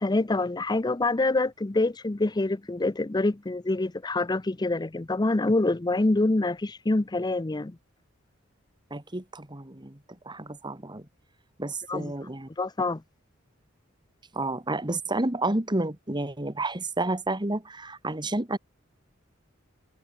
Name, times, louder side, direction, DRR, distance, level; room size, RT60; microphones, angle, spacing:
voice 1, 0.0-7.8 11.9-12.1 12.6-13.0, left 2 dB, 20° left, 0.6 m, -26 dB
voice 2, 8.9-10.0 10.3-11.0 11.6-12.5 14.3-18.6, right 2 dB, 20° right, 2.1 m, -30 dB
head